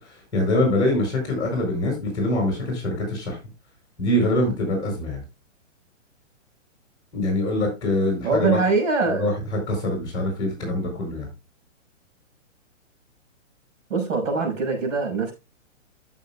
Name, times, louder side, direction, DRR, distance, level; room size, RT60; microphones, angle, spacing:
voice 1, 0.0-3.4 4.0-5.2 7.1-8.6 9.1-11.3, left 1 dB, 10° left, 6.5 m, -24 dB
voice 2, 8.2-9.3 13.9-15.3, right 4 dB, 75° right, 5.8 m, -23 dB
14.5 x 7.4 x 2.3 m
hypercardioid pair, 170°, 39 cm